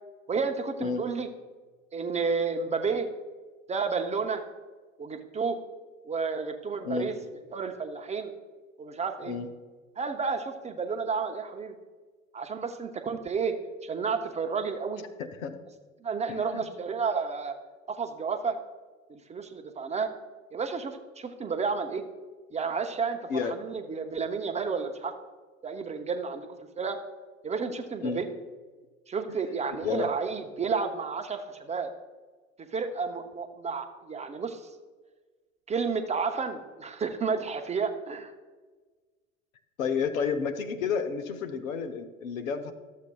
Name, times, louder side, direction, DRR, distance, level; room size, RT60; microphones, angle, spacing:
voice 1, 0.3-1.3 1.9-3.1 3.7-4.4 5.0-5.6 6.1-7.1 7.5-8.3 8.8-9.4 10.0-11.7 12.3-13.6 13.8-15.0 16.0-17.6 17.9-18.6 19.1-20.1 20.5-22.0 22.5-25.1 25.6-26.5 26.8-27.0 27.4-28.3 29.1-31.9 32.7-34.6 35.7-38.3, right 5 dB, 15° right, 6 dB, 0.6 m, -31 dB
voice 2, 15.2-15.5 16.3-16.6 23.3-23.6 28.0-28.2 29.3-29.4 29.8-30.1 39.8-42.7, left 6 dB, 75° left, 9 dB, 0.9 m, -31 dB
13.0 x 7.4 x 2.3 m, 1.3 s
hypercardioid pair, 90°, 41 cm